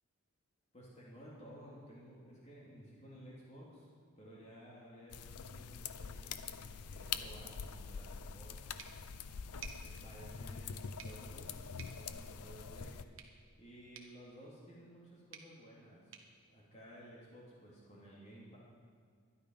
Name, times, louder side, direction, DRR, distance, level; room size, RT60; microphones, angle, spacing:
voice 1, 0.7-3.9 4.2-8.9 9.8-11.5 11.8-12.9 13.6-16.2 16.5-18.6, equal, 30° left, -5 dB, 2.6 m, -55 dB
sound 1, 5.1-13.0, left 6 dB, 90° left, 0.6 m, -45 dB
sound 2, 8.8-17.5, right 7 dB, 60° right, 1.2 m, -58 dB
12.5 x 11.0 x 5.3 m, 2.1 s
head